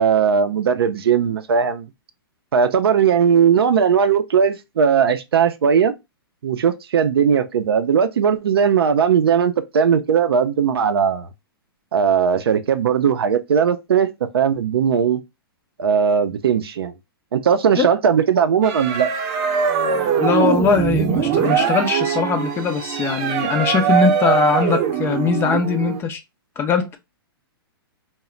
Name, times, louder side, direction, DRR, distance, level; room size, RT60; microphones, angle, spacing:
voice 1, 0.0-1.9 2.5-5.9 6.4-11.3 11.9-15.2 15.8-16.9 17.3-19.1, right 7 dB, 75° right, 0.4 m, -18 dB
sound 1, 18.6-26.0, right 7 dB, 40° right, 0.7 m, -21 dB
voice 2, 20.2-26.2 26.6-27.0, left 5 dB, 20° left, 0.4 m, -21 dB
2.1 x 2.0 x 3.6 m
hypercardioid pair, 120°, 13 cm